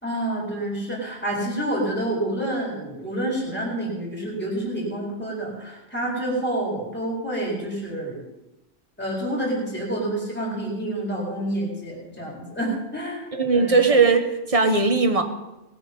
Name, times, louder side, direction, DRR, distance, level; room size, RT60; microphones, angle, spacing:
voice 1, 0.0-8.2 9.0-13.9, right 1 dB, 10° left, -3 dB, 4.2 m, -28 dB
voice 2, 13.3-15.2, right 4 dB, 30° right, 6 dB, 1.3 m, -19 dB
19.5 x 8.2 x 5.3 m, 0.97 s
omnidirectional pair, 1.3 m